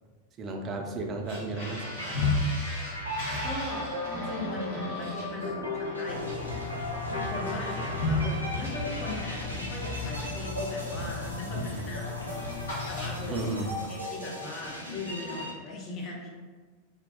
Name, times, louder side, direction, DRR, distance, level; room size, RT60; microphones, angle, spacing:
voice 1, 0.4-2.3 8.1-8.3 11.4-11.9 13.3-13.9, right 2 dB, 30° right, 2 dB, 0.3 m, -35 dB
sound 1, 1.2-11.1 11.4-11.7 12.0-13.6, left 2 dB, 65° left, 0.7 m, -35 dB
sound 2, 1.8-15.5, left 1 dB, 85° right, 0.5 m, -37 dB
voice 2, 3.0-6.8 7.3-13.5 13.9-16.3, left 2 dB, 30° left, -2 dB, 0.5 m, -39 dB
sound 3, 6.1-13.8, left 4 dB, 85° left, 0.4 m, -38 dB
2.5 x 2.2 x 2.2 m, 1.4 s
figure-of-eight pair, 90°, 0 cm